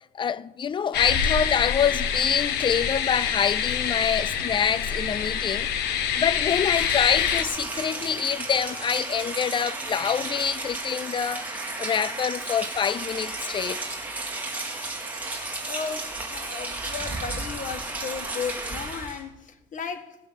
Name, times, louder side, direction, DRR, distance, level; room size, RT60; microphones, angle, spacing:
voice 1, 0.2-5.7 6.1-13.8, left 7 dB, 30° left, 0.5 m, -26 dB
sound 1, 0.9-7.4, left 8 dB, 80° left, 1.3 m, -26 dB
Rain, 6.6-19.2, right 2 dB, 10° right, 3.8 m, -33 dB
voice 2, 15.7-20.3, left 6 dB, 50° left, 1.5 m, -35 dB
17.5 x 8.1 x 7.3 m
cardioid pair, 110°, 17 cm